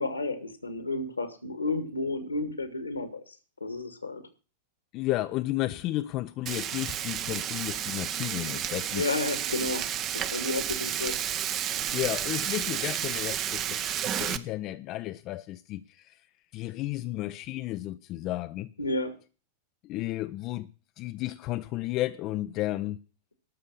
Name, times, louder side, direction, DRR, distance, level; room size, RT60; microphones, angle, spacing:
voice 1, 0.0-3.4 3.6-4.2 8.9-11.2 18.8-19.1, left 2 dB, 80° left, 2.1 m, -32 dB
voice 2, 4.9-9.0 11.9-16.2 16.5-18.7 19.8-20.7 21.0-23.0, left 16 dB, 40° left, 0.6 m, -33 dB
Frying (food), 6.5-14.4, right 10 dB, 35° right, 0.9 m, -31 dB
12.5 x 6.7 x 9.8 m
figure-of-eight pair, 90°, 0 cm